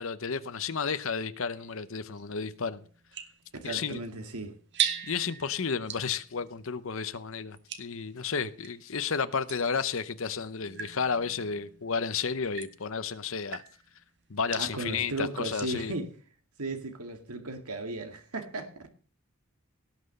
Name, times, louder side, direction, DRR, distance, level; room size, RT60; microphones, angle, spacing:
voice 1, 0.0-2.8 3.6-4.0 5.0-13.6 14.3-15.9, left 5 dB, 60° left, 0.8 m, -32 dB
sound 1, 1.5-8.8 9.5-15.9, right 9 dB, 50° right, 1.8 m, -40 dB
voice 2, 3.6-4.5 14.6-16.1 16.6-18.9, right 2 dB, 85° right, 2.0 m, -36 dB
18.0 x 6.1 x 6.7 m
head